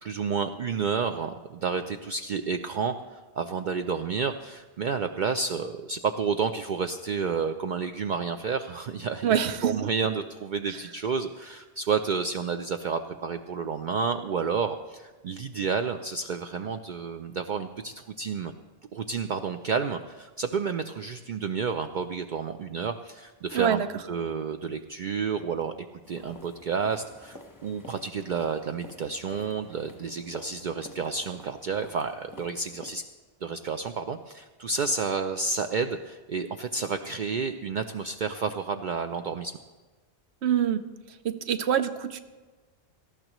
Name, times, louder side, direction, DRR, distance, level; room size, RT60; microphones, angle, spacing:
voice 1, 0.0-18.5 18.9-23.8 24.1-25.7 26.1-33.0 33.4-39.6, right 5 dB, 55° right, 7 dB, 0.6 m, -30 dB
voice 2, 9.2-9.9 23.5-23.9 40.4-40.8 41.2-42.2, right 9 dB, 90° right, 11 dB, 1.0 m, -25 dB
sound 1, 26.0-32.9, left 1 dB, 20° left, 1.0 m, -49 dB
18.5 x 14.0 x 3.0 m, 1.3 s
omnidirectional pair, 1.1 m